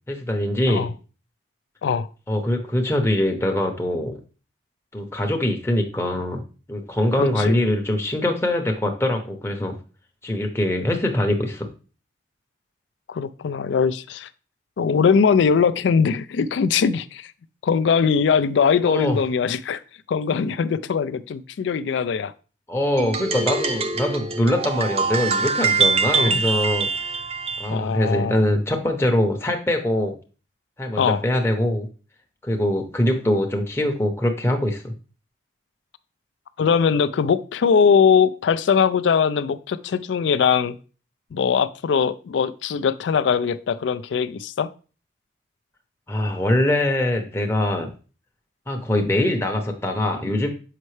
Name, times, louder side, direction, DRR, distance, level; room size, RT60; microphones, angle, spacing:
voice 1, 0.1-0.9 2.3-4.2 4.9-6.4 6.7-9.7 10.2-11.7 18.8-19.2 22.7-26.9 27.6-30.2 30.8-31.9 32.4-34.9 46.1-47.9 48.7-50.5, left 1 dB, 15° left, 2 dB, 0.7 m, -23 dB
voice 2, 7.2-7.7 13.1-14.3 14.8-17.3 17.6-19.8 20.1-22.3 26.1-26.4 27.7-28.4 31.0-31.2 36.6-40.8 41.3-44.7, left 6 dB, 70° left, 14 dB, 0.3 m, -21 dB
sound 1, 23.0-27.7, right 4 dB, 30° right, 0.5 m, -24 dB
6.6 x 5.3 x 3.2 m, 0.36 s
head